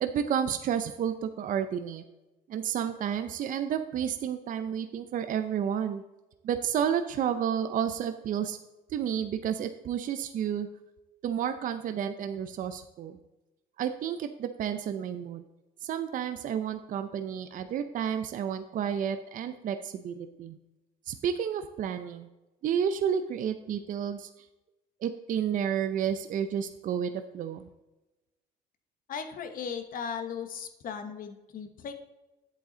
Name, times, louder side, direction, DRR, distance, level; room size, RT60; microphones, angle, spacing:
voice 1, 0.0-2.0 2.5-6.0 6.4-8.6 8.9-10.7 11.2-13.2 13.8-15.4 15.8-20.6 21.1-22.3 22.6-24.5 25.0-27.7, right 8 dB, 50° right, 9 dB, 0.6 m, -31 dB
voice 2, 29.1-31.9, left 6 dB, 55° left, 8 dB, 1.0 m, -37 dB
8.3 x 7.9 x 3.8 m, 1.0 s
cardioid pair, 110°, 17 cm